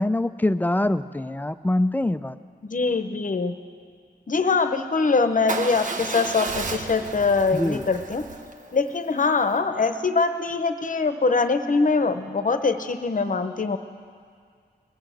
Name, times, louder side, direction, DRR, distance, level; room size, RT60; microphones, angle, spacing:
voice 1, 0.0-2.4 7.5-7.8, left 1 dB, 10° left, 13 dB, 0.4 m, -24 dB
voice 2, 2.6-3.5 4.3-8.2 8.7-13.8, left 4 dB, 50° left, 9 dB, 0.8 m, -23 dB
Motorcycle / Engine starting / Idling, 5.5-9.6, right 3 dB, 45° right, 0.9 m, -33 dB
20.5 x 7.1 x 7.6 m, 2.2 s
wide cardioid pair, 85°, 18 cm